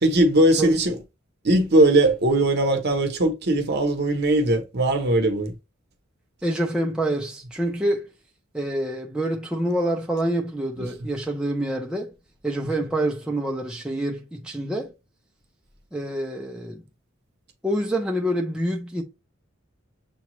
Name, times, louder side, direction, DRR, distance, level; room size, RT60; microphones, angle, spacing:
voice 1, 0.0-1.0 1.4-5.5 10.8-10.9, right 1 dB, 55° right, 0.9 m, -20 dB
voice 2, 6.4-8.1 8.5-12.1 12.4-14.9 15.9-16.8 17.6-19.0, right 1 dB, 5° right, 0.6 m, -26 dB
6.9 x 2.3 x 3.0 m
head